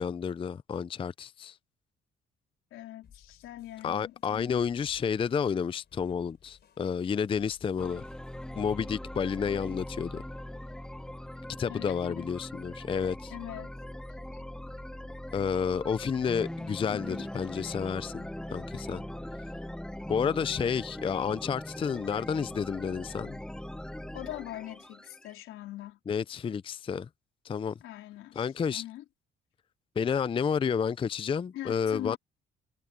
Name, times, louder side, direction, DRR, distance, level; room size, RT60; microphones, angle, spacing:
voice 1, 0.0-1.6 3.8-8.0 8.6-10.2 11.6-13.3 15.3-19.0 20.1-23.4 26.1-27.1 27.4-27.7 28.4-28.8 30.0-32.2, left 6 dB, 25° left, 0.4 m, -30 dB
voice 2, 2.7-4.7 11.7-12.3 13.3-13.7 14.3-14.4 16.9-17.3 24.1-26.0 27.8-29.0 31.5-32.2, left 14 dB, 90° left, 4.0 m, -42 dB
sound 1, 3.0-8.7, left 8 dB, 55° left, 4.2 m, -60 dB
sound 2, 7.8-25.3, left 1 dB, 5° left, 0.9 m, -41 dB
cardioid pair, 90°, 20 cm